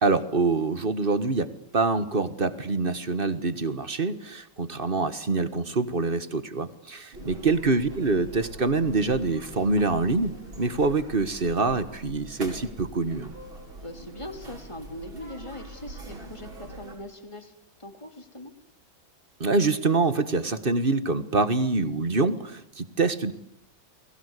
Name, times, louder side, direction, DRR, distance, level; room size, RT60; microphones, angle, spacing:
voice 1, 0.0-10.3 10.6-13.3 19.4-23.3, right 3 dB, 30° right, 13 dB, 1.5 m, -25 dB
sound 1, 7.1-17.0, right 1 dB, 85° right, 6.3 m, -43 dB
voice 2, 7.2-7.5 13.8-17.5 17.8-18.5, left 1 dB, 15° left, 7 dB, 3.2 m, -41 dB
29.5 x 21.5 x 8.4 m, 0.76 s
omnidirectional pair, 2.2 m